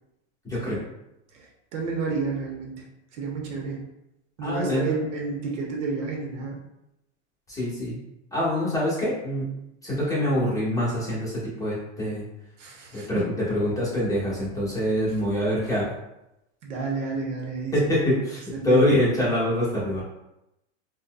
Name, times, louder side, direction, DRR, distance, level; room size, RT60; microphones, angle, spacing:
voice 1, 1.7-2.8 3.2-3.8 4.4-6.6 12.6-13.2 16.6-18.0 18.5-18.9, right 4 dB, 75° right, 0 dB, 0.9 m, -30 dB
voice 2, 4.4-4.9 7.5-8.0 8.3-9.5 9.8-12.2 12.9-13.2 13.5-15.9 17.7-20.0, left 1 dB, 10° left, -8 dB, 1.2 m, -25 dB
4.0 x 2.3 x 2.2 m, 0.87 s
supercardioid pair, 135°, 36 cm